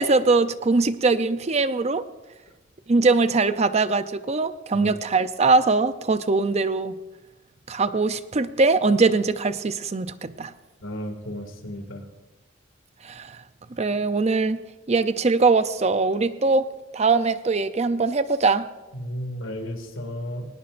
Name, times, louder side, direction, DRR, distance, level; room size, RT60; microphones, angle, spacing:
voice 1, 0.0-2.0 2.9-6.9 7.7-10.5 13.0-13.4 13.7-14.6 14.9-16.7 16.9-18.7, right 3 dB, 35° right, 12 dB, 0.5 m, -21 dB
voice 2, 10.8-12.0 18.9-20.5, equal, 90° left, 5 dB, 2.3 m, -33 dB
20.5 x 19.0 x 2.6 m, 1.1 s
head